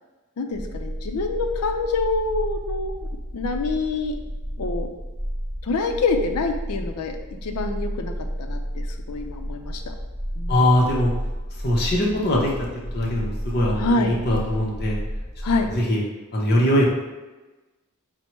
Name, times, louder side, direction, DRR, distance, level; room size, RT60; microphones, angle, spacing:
voice 1, 0.4-2.9 3.3-4.2 4.6-4.9 5.6-8.1 8.4-9.9 10.4-10.6 13.8-14.1 15.4-15.7, left 3 dB, 85° left, 5 dB, 0.5 m, -26 dB
sound 1, 0.5-15.8, equal, 20° right, 0.7 m, -32 dB
voice 2, 10.5-11.1 11.6-12.7 12.9-15.0 15.7-16.0 16.3-16.9, left 1 dB, 45° left, -3 dB, 0.7 m, -21 dB
4.3 x 2.1 x 4.4 m, 1.2 s
head